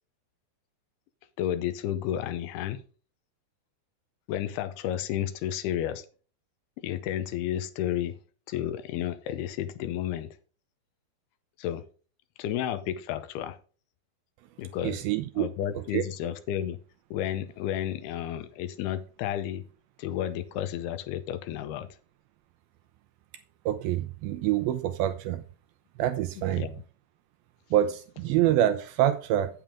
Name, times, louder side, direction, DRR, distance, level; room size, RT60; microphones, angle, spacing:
voice 1, 1.4-2.8 4.3-6.1 6.8-8.2 8.5-10.3 11.6-11.9 12.4-13.6 14.6-15.0 15.4-16.8 17.1-19.6 20.0-21.9 26.4-26.8, left 11 dB, 85° left, 2.7 m, -32 dB
voice 2, 14.8-15.5 15.9-16.0 23.7-25.4 26.0-26.6 27.7-29.5, right 12 dB, 85° right, 2.2 m, -26 dB
9.0 x 8.6 x 3.6 m
omnidirectional pair, 4.7 m